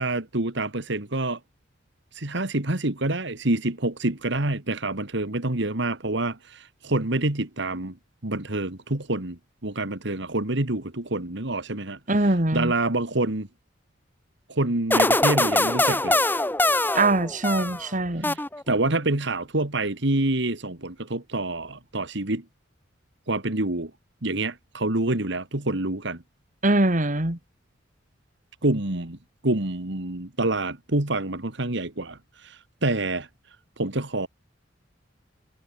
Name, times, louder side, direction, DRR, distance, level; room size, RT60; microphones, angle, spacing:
voice 1, 0.0-1.4 2.1-8.0 8.2-12.0 12.5-13.5 14.5-16.2 18.2-22.4 23.3-23.9 24.2-26.2 28.6-29.2 29.4-33.3 33.8-34.3, right 2 dB, 65° right, 2.2 m, -27 dB
voice 2, 12.1-12.7 16.9-18.4 26.6-27.4, right 2 dB, 40° right, 2.7 m, -22 dB
sound 1, 14.9-17.9 18.2-18.9, left 2 dB, 10° left, 2.4 m, -23 dB
head